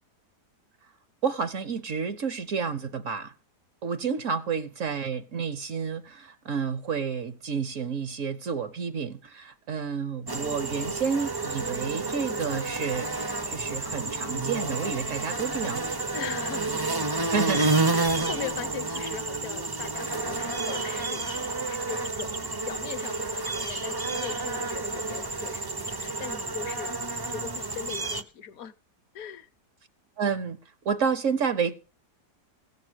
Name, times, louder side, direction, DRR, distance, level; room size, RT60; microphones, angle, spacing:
voice 1, 1.2-3.3 3.8-13.1 13.5-15.9 17.3-17.7 30.2-30.6 30.8-31.8, right 6 dB, 55° right, 1.0 m, -30 dB
sound 1, 10.3-28.2, right 3 dB, 25° right, 0.5 m, -30 dB
voice 2, 16.1-26.9 27.3-28.7 29.1-29.5, left 9 dB, 60° left, 1.1 m, -40 dB
16.0 x 7.5 x 6.3 m
omnidirectional pair, 1.8 m